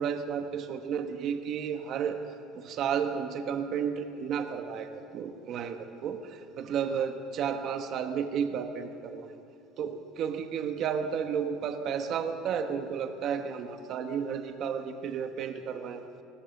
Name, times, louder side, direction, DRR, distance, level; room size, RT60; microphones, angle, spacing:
voice 1, 0.0-2.2 2.5-9.4 9.8-16.0, right 7 dB, 35° right, 7 dB, 1.1 m, -32 dB
20.5 x 20.5 x 7.1 m, 2.5 s
cardioid pair, 175°, 0 cm